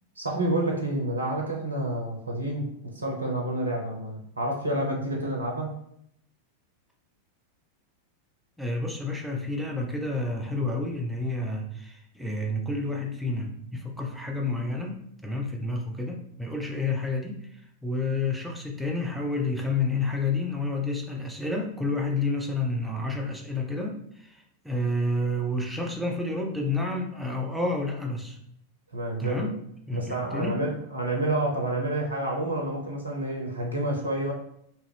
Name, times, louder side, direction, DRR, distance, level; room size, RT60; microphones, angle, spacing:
voice 1, 0.2-5.7 28.9-29.5 29.9-34.3, right 1 dB, 80° right, 0 dB, 0.6 m, -29 dB
voice 2, 8.6-15.0 15.2-28.4 29.2-29.6 29.9-30.6, left 2 dB, 5° right, 0 dB, 0.5 m, -30 dB
2.8 x 2.4 x 3.2 m, 0.73 s
figure-of-eight pair, 90°, 0 cm